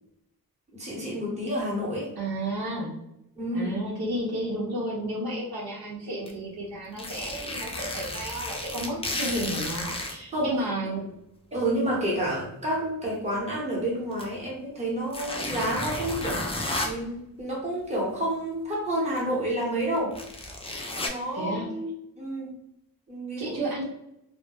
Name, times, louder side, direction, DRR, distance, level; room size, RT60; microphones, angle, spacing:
voice 1, 0.7-2.1 3.4-3.8 10.3-10.5 11.5-20.2 21.0-22.5 23.1-23.8, right 1 dB, 20° right, -4 dB, 0.8 m, -29 dB
voice 2, 2.2-2.9 3.5-11.0 21.3-21.7 23.4-23.8, right 1 dB, 80° right, -4 dB, 0.9 m, -32 dB
sound 1, 6.3-6.4 6.9-10.2 11.1-11.2 14.1-14.2 15.1-16.9 19.2-19.3 19.8-21.1, left 2 dB, 15° left, 0.3 m, -32 dB
2.1 x 2.0 x 2.9 m, 0.82 s
wide cardioid pair, 115°, 36 cm